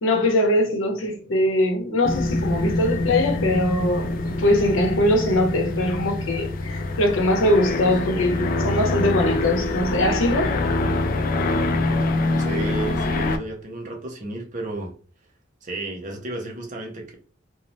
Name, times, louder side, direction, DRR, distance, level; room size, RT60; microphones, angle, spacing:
voice 1, 0.0-10.6, left 1 dB, 80° left, 0.7 m, -22 dB
sound 1, 2.0-13.4, left 2 dB, 45° left, 0.3 m, -25 dB
voice 2, 12.4-14.9 15.6-17.2, right 2 dB, 40° right, 0.5 m, -33 dB
3.0 x 2.0 x 2.6 m
head